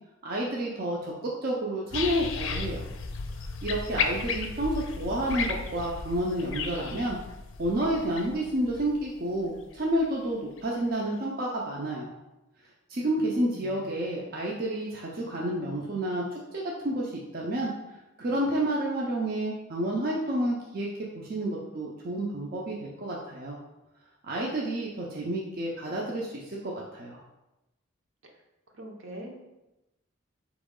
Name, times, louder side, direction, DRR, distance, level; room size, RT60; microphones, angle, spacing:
voice 1, 0.2-2.8 3.6-7.2 7.6-12.1 12.9-17.7 18.2-23.6 24.2-27.2, right 1 dB, 45° right, -3 dB, 0.5 m, -30 dB
sound 1, 1.9-10.0 10.6-10.7, left 5 dB, 70° left, 0.4 m, -34 dB
voice 2, 13.3-14.0 28.2-28.4 28.7-29.5, right 1 dB, 70° right, 1 dB, 0.8 m, -44 dB
4.3 x 3.0 x 3.7 m, 0.97 s
head